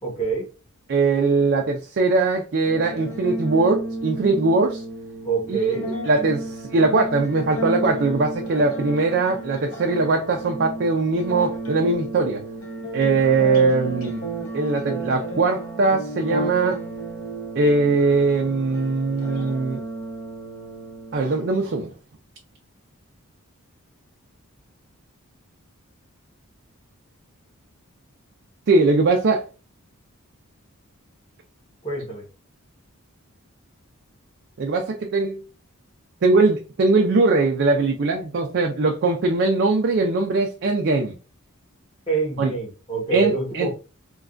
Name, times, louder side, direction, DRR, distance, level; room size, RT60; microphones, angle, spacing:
voice 1, 0.0-0.5 5.2-5.9 31.8-32.3 42.1-43.7, right 4 dB, 25° left, 0.9 m, -26 dB
voice 2, 0.9-4.8 5.5-5.7 6.1-12.4 12.9-14.2 14.5-16.8 17.6-19.8 21.1-21.9 28.7-29.4 34.6-35.4 36.2-41.1 42.4-42.5 43.1-43.7, right 3 dB, 50° right, 0.4 m, -21 dB
sound 1, 2.6-21.6, right 2 dB, 65° left, 1.0 m, -33 dB
3.2 x 2.3 x 2.4 m
head